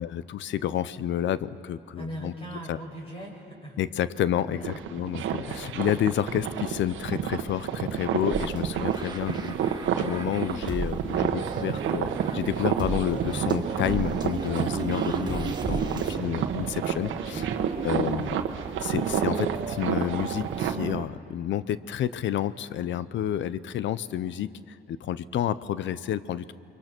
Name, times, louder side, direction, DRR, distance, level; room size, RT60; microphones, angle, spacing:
voice 1, 0.0-2.3 2.7-2.8 3.8-17.5 17.8-18.5 18.8-26.5, left 10 dB, 70° left, 16 dB, 0.7 m, -30 dB
voice 2, 1.9-3.8 4.4-4.7 17.3-17.7, right 1 dB, 30° left, -2 dB, 6.4 m, -40 dB
sound 1, 4.6-20.7, right 8 dB, 80° right, 1.3 m, -30 dB
sound 2, 8.3-16.2, right 3 dB, 20° right, 1.7 m, -37 dB
sound 3, 11.1-21.1, right 7 dB, 40° right, 0.6 m, -35 dB
28.5 x 23.0 x 6.1 m, 2.7 s
cardioid pair, 90°, 20 cm